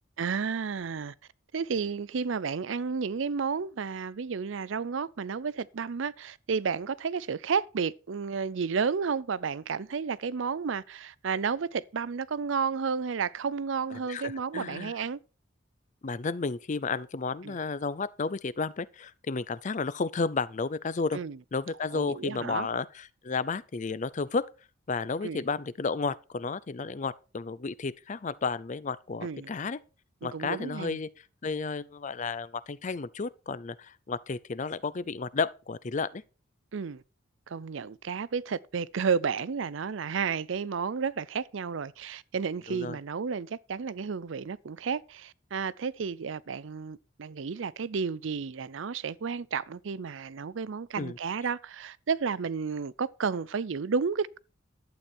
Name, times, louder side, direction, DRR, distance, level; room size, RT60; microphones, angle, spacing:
voice 1, 0.2-1.1 1.5-15.2 17.4-17.6 21.1-21.4 21.9-22.7 25.2-25.4 29.2-29.5 30.2-31.0 36.7-37.0 37.5-54.4, right 5 dB, 70° right, 0.5 m, -32 dB
voice 2, 14.1-14.9 16.0-21.2 21.5-24.5 24.9-29.8 30.2-31.1 31.4-36.2 42.7-43.0 51.0-51.2, left 4 dB, 40° left, 0.5 m, -32 dB
12.0 x 8.4 x 4.4 m
head